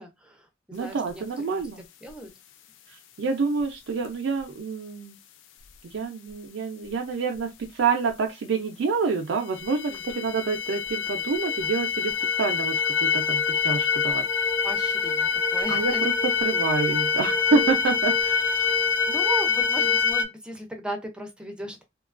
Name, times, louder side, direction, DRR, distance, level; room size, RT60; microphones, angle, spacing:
voice 1, 0.0-2.3 9.9-10.3 14.6-16.1 19.1-21.8, right 1 dB, 5° right, 0.4 m, -37 dB
voice 2, 0.7-1.8 2.9-5.2 5.9-14.3 15.7-18.7, right 4 dB, 75° right, 0.4 m, -28 dB
sound 1, 9.5-20.2, left 6 dB, 90° left, 0.4 m, -25 dB
2.7 x 2.2 x 2.4 m
head